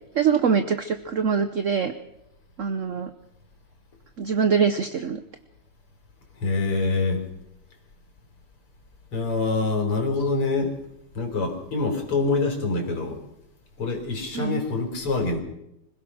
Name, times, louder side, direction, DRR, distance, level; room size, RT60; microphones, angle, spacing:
voice 1, 0.1-1.9 2.6-3.1 4.2-5.2 14.3-14.6, right 6 dB, 55° right, 9 dB, 0.9 m, -23 dB
voice 2, 6.4-7.2 9.1-10.7 11.1-13.2 13.8-15.4, left 3 dB, 85° left, 4 dB, 4.6 m, -25 dB
25.5 x 16.5 x 6.2 m, 0.85 s
omnidirectional pair, 2.4 m